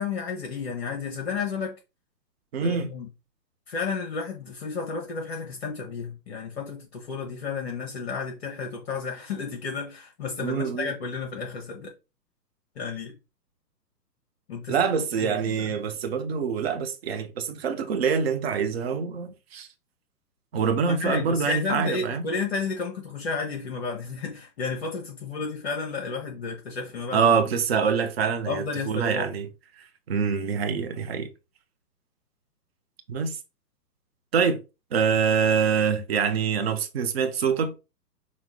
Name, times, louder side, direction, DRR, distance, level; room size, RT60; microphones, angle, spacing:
voice 1, 0.0-1.7 2.6-3.1 3.7-11.9 12.8-13.1 14.5-15.8 20.8-27.4 28.5-29.3, left 5 dB, 40° left, 0.9 m, -32 dB
voice 2, 2.5-2.9 10.4-10.9 14.7-19.7 20.5-22.2 27.1-29.5 30.1-31.3 33.1-33.4 34.3-34.6 34.9-37.7, right 6 dB, 40° right, 0.7 m, -25 dB
5.7 x 2.3 x 3.5 m
figure-of-eight pair, 125°, 50 cm